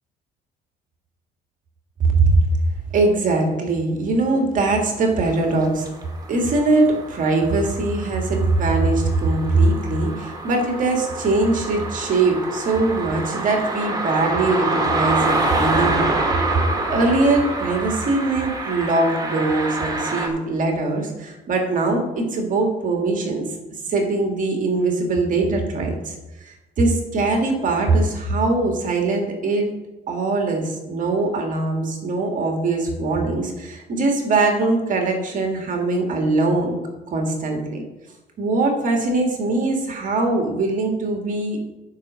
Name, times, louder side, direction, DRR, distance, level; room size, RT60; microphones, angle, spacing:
voice 1, 2.9-5.9 6.3-16.2 16.9-23.5 23.9-26.1 26.4-29.7 30.1-36.8 37.1-37.8 38.4-41.6, right 2 dB, 50° right, 2 dB, 1.9 m, -21 dB
sound 1, 5.6-20.3, right 2 dB, 25° right, 2.0 m, -27 dB
11.0 x 5.3 x 6.2 m, 1.1 s
cardioid pair, 110°, 17 cm